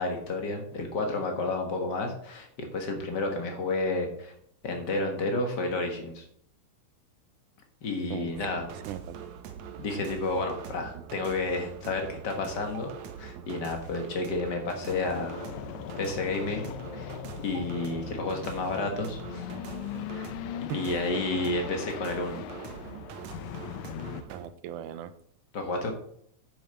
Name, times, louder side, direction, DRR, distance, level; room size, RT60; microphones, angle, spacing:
voice 1, 0.0-4.3 4.6-6.2 7.8-8.7 9.8-15.4 16.0-17.1 17.4-19.5 20.1-20.3 20.7-22.4 25.5-25.9, left 2 dB, 45° left, 3 dB, 1.7 m, -31 dB
voice 2, 8.1-8.5 8.9-9.2 20.7-20.8 24.3-25.1, right 10 dB, 90° right, 12 dB, 2.2 m, -37 dB
sound 1, 8.3-24.5, right 7 dB, 70° right, 2.0 m, -43 dB
sound 2, 14.9-24.2, left 13 dB, 80° left, 1.8 m, -40 dB
9.2 x 7.2 x 4.3 m, 0.65 s
omnidirectional pair, 3.5 m